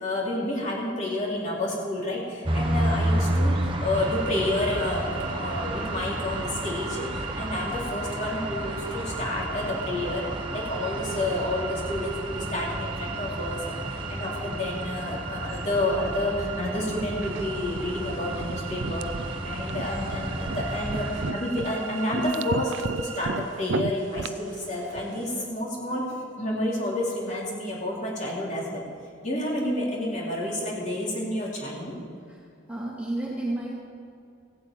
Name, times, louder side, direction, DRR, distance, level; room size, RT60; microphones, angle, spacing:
voice 1, 0.0-10.3 10.5-28.8 29.2-31.9, left 1 dB, 35° left, -5 dB, 3.7 m, -30 dB
sound 1, 2.4-21.3, right 1 dB, 25° right, 1.2 m, -31 dB
sound 2, 3.9-23.4, right 7 dB, 90° right, 1.2 m, -40 dB
sound 3, 17.2-25.4, right 4 dB, 65° right, 0.5 m, -35 dB
voice 2, 32.3-33.7, right 1 dB, 5° right, -5 dB, 2.0 m, -32 dB
16.0 x 8.5 x 9.0 m, 2.4 s
head